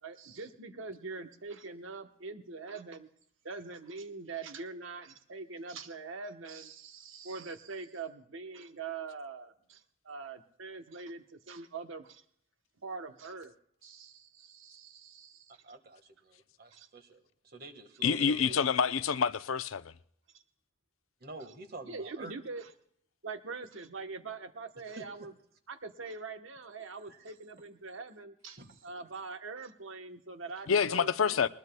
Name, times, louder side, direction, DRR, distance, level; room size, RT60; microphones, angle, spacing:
voice 1, 0.0-3.1 3.4-12.2 12.8-13.5 13.8-15.5 16.7-16.9 18.1-18.5 20.3-20.4 21.8-22.7 23.2-25.3 25.7-31.4, right 4 dB, 75° right, 1.0 m, -43 dB
voice 2, 15.6-18.5 21.2-22.3 25.0-25.1 27.1-27.2 28.6-28.7, right 3 dB, 45° right, 1.6 m, -48 dB
voice 3, 18.0-19.9 30.7-31.5, left 6 dB, 85° left, 0.6 m, -27 dB
21.0 x 20.0 x 2.2 m
head